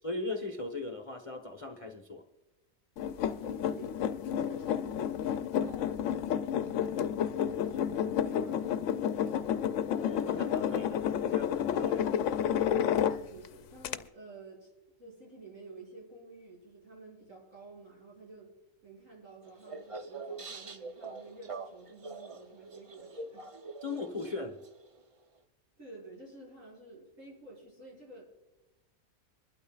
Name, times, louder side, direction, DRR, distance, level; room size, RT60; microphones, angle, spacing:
voice 1, 0.0-2.2 10.0-12.0 23.8-24.6, left 3 dB, 30° left, 4 dB, 0.8 m, -38 dB
sound 1, 3.0-13.5 13.8-14.0, left 9 dB, 70° left, 0.8 m, -30 dB
voice 2, 3.1-6.0 6.4-9.3 11.8-12.3 13.0-14.7 15.0-18.5 18.8-23.5 25.8-28.2, right 2 dB, 65° right, -5 dB, 6.4 m, -51 dB
sound 2, 19.4-25.0, right 3 dB, 40° right, 0.4 m, -44 dB
25.5 x 12.0 x 2.3 m, 1.0 s
omnidirectional pair, 1.5 m